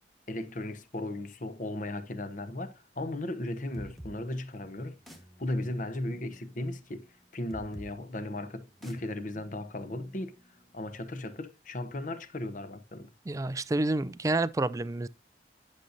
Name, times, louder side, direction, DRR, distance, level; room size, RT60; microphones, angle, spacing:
voice 1, 0.3-5.0 5.4-7.1 7.3-10.3 10.7-13.1, left 1 dB, 45° left, 0.9 m, -36 dB
sound 1, 3.7-11.1, equal, ahead, 1.3 m, -52 dB
voice 2, 13.3-15.1, right 2 dB, 20° right, 0.3 m, -29 dB
10.5 x 6.5 x 2.7 m
head